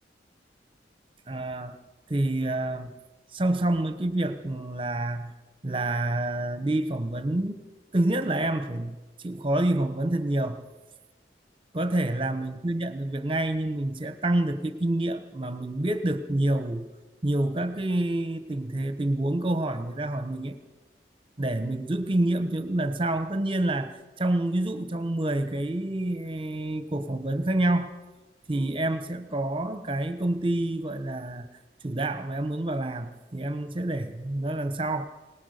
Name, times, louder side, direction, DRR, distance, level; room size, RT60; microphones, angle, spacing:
voice 1, 1.3-1.8 2.1-2.9 3.3-5.3 5.6-7.6 7.9-10.6 11.7-16.9 17.2-20.6 21.4-27.9 28.5-31.5 31.8-35.1, right 1 dB, 30° right, 10 dB, 1.1 m, -28 dB
22.0 x 19.5 x 6.7 m, 1.1 s
head